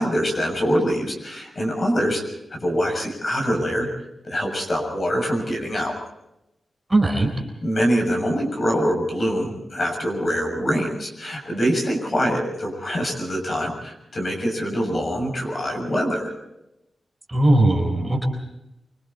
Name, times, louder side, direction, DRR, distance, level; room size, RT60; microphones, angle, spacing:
voice 1, 0.0-2.2 2.5-3.9 4.2-6.0 7.6-16.3, equal, 35° left, 2 dB, 6.6 m, -24 dB
voice 2, 6.9-7.3 17.3-18.2, right 1 dB, 15° right, 1 dB, 4.1 m, -18 dB
25.5 x 25.5 x 4.1 m, 0.89 s
wide cardioid pair, 145°, 0 cm